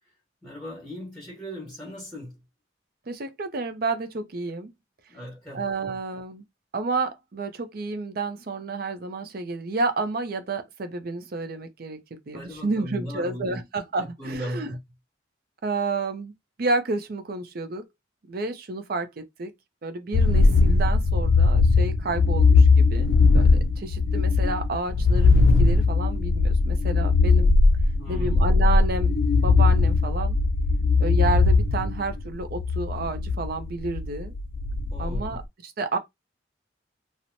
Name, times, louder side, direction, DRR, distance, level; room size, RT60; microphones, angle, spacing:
voice 1, 0.4-2.4 5.1-5.9 12.3-13.6 14.0-14.8 28.0-28.4 34.9-35.4, equal, 10° left, 1.3 m, -37 dB
voice 2, 3.1-4.7 5.5-6.4 6.7-12.0 12.3-14.7 15.6-16.3 16.6-17.8 18.3-19.5 19.8-23.1 23.3-27.5 28.1-29.2 29.4-30.4 31.0-34.3 35.0-36.0, right 3 dB, 50° right, 0.5 m, -30 dB
sound 1, 20.1-35.4, left 3 dB, 80° left, 0.4 m, -20 dB
3.0 x 2.1 x 2.6 m
head